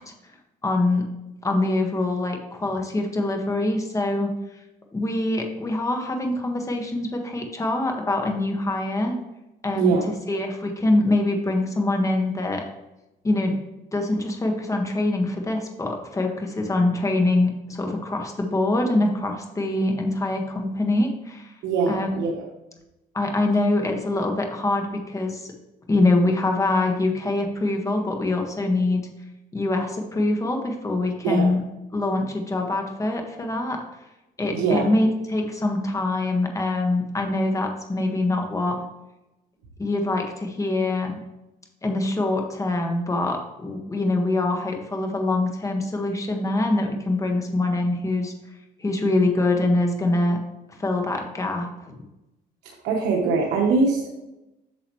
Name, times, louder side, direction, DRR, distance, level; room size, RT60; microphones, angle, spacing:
voice 1, 0.6-1.0 1.4-4.3 4.9-9.1 9.6-9.9 10.3-12.6 13.2-13.5 13.9-21.5 21.9-22.1 23.1-25.5 25.9-29.0 29.5-31.6 31.9-33.8 34.4-38.8 39.8-41.2 41.8-48.3 48.8-50.4 50.8-51.7, left 2 dB, 20° left, 3 dB, 1.5 m, -24 dB
voice 2, 9.8-10.1 21.6-22.5 31.2-31.5 34.5-34.9 52.6-54.2, right 4 dB, 80° right, -1 dB, 1.2 m, -23 dB
8.8 x 6.4 x 3.1 m, 0.95 s
cardioid pair, 110°, 17 cm